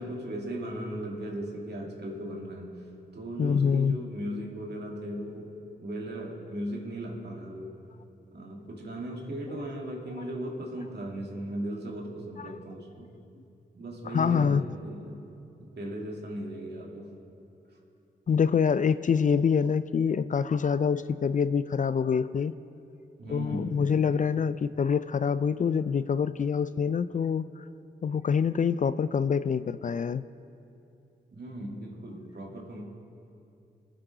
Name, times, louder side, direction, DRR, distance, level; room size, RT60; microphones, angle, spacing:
voice 1, 0.0-2.9 3.1-5.5 5.8-7.8 8.3-13.1 13.7-15.2 15.6-17.1 23.2-23.8 31.3-32.9, right 1 dB, 60° right, -1 dB, 2.4 m, -37 dB
voice 2, 3.4-4.0 14.1-14.6 18.3-22.5 23.3-27.4 28.0-30.2, left 6 dB, 40° left, 14 dB, 0.4 m, -25 dB
22.5 x 7.7 x 3.9 m, 2.7 s
cardioid pair, 50°, 19 cm